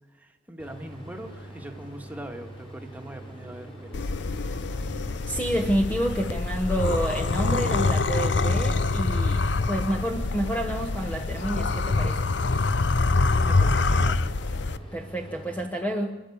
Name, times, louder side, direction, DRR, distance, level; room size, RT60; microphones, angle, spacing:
voice 1, 0.1-4.1 13.3-14.2, right 1 dB, 10° right, 4 dB, 1.8 m, -41 dB
sound 1, 0.6-15.6, right 1 dB, 30° left, 7.5 m, -43 dB
sound 2, 3.9-14.8, left 3 dB, 70° left, 0.7 m, -25 dB
voice 2, 5.3-12.3 14.9-16.2, right 1 dB, 10° left, 4 dB, 1.1 m, -29 dB
27.0 x 12.0 x 8.6 m, 1.2 s
head